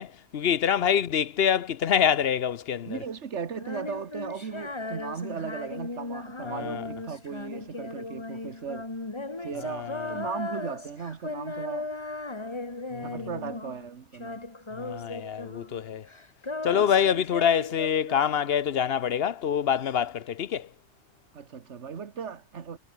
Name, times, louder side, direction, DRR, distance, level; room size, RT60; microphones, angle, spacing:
voice 1, 0.0-3.0 6.4-6.8 9.6-10.1 12.9-13.3 14.8-16.1 16.6-20.7, left 8 dB, 55° left, 0.9 m, -26 dB
voice 2, 2.9-8.9 9.4-11.9 13.0-14.5 16.7-16.9 21.3-22.8, right 6 dB, 60° right, 1.7 m, -37 dB
Female singing, 3.5-13.9 14.1-15.8 16.1-18.7, left 2 dB, 20° left, 1.6 m, -37 dB
omnidirectional pair, 1.3 m